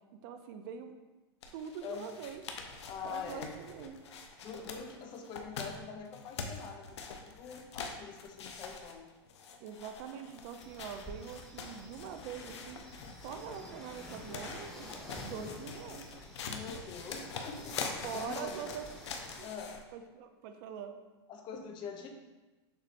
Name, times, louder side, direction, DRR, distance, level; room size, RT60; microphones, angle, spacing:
voice 1, 0.2-0.9 1.5-2.4 3.0-4.0 9.6-12.8 13.1-14.9 15.2-16.1 18.0-18.8 19.4-19.5 19.9-20.9, right 7 dB, 50° right, 7 dB, 0.5 m, -43 dB
sound 1, 1.4-19.8, left 5 dB, 85° left, 0.6 m, -45 dB
voice 2, 1.8-2.2 2.8-3.5 4.4-9.1 15.4-15.5 16.4-18.5 19.3-19.8 21.3-22.1, left 6 dB, 35° left, 4 dB, 0.6 m, -44 dB
sound 2, 10.6-19.4, left 1 dB, 5° left, 1.0 m, -50 dB
6.2 x 3.1 x 2.6 m, 1.2 s
hypercardioid pair, 130°, 14 cm